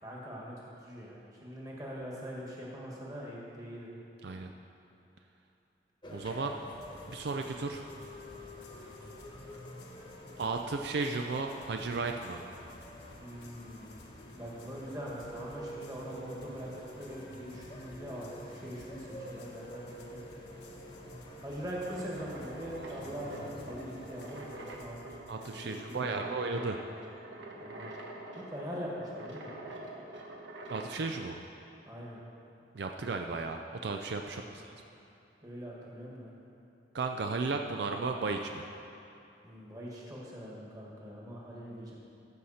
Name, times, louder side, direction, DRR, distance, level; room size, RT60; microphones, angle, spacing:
voice 1, 0.0-0.6 0.8-3.9 13.2-14.0 14.3-16.7 17.0-20.2 21.4-24.4 24.8-25.1 25.6-26.4 27.6-27.9 28.3-29.5 31.9-32.2 34.3-34.6 35.4-36.3 39.4-41.9, equal, 20° right, -5 dB, 1.8 m, -42 dB
sound 1, 6.0-24.8, equal, 25° left, 1.2 m, -49 dB
voice 2, 6.1-6.6 7.1-7.8 10.4-12.4 25.3-26.8 30.7-31.4 32.7-34.8 36.9-38.7, right 3 dB, 70° right, 4 dB, 0.5 m, -34 dB
sound 2, 6.8-26.0, left 2 dB, 70° left, 1.1 m, -53 dB
sound 3, 21.9-30.9, right 1 dB, 90° right, 1.2 m, -46 dB
15.0 x 6.5 x 4.2 m, 2.8 s
head